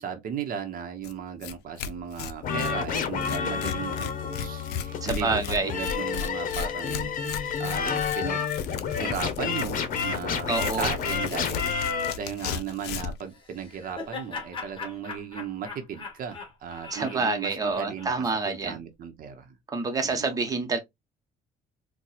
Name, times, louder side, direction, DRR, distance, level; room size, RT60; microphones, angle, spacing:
voice 1, 0.0-7.1 7.6-8.5 8.9-19.5 20.0-20.5, right 7 dB, 55° right, 0.8 m, -36 dB
Tearing, 1.0-1.1 1.4-1.5 1.8-13.2, left 8 dB, 80° left, 0.5 m, -36 dB
sound 1, 2.4-12.1, left 6 dB, 55° left, 0.9 m, -30 dB
voice 2, 5.0-5.7 10.5-10.9 16.9-18.8 19.7-20.8, right 3 dB, 20° right, 0.9 m, -27 dB
Laughter, 13.3-18.5, left 4 dB, 30° left, 1.4 m, -40 dB
4.2 x 2.3 x 2.3 m
cardioid pair, 110°, 17 cm